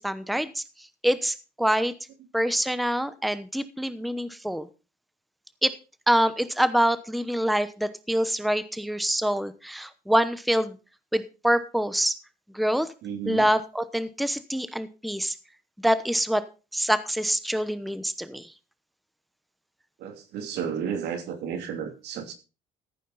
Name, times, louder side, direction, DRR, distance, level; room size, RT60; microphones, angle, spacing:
voice 1, 0.0-1.9 2.3-4.7 5.6-5.7 6.1-10.7 11.1-12.2 12.5-12.9 13.3-15.3 15.8-16.4 16.7-18.5, equal, ahead, 13 dB, 0.9 m, -25 dB
voice 2, 13.0-13.5 20.0-22.3, right 7 dB, 80° right, 6 dB, 2.8 m, -32 dB
14.5 x 9.1 x 4.0 m, 0.32 s
cardioid pair, 110°, 17 cm